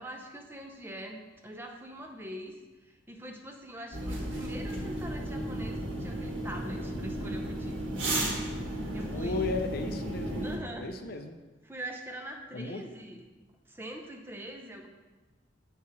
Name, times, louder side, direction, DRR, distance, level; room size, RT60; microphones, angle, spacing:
voice 1, 0.0-7.9 8.9-9.5 10.4-10.9 11.6-13.2 13.7-14.9, right 1 dB, 10° right, 2 dB, 0.6 m, -43 dB
sound 1, 3.9-10.6, right 1 dB, 75° right, 1.8 m, -34 dB
voice 2, 9.1-10.4 10.8-11.4 12.5-12.8, left 3 dB, 50° left, 7 dB, 0.5 m, -35 dB
7.4 x 5.8 x 4.3 m, 1.3 s
head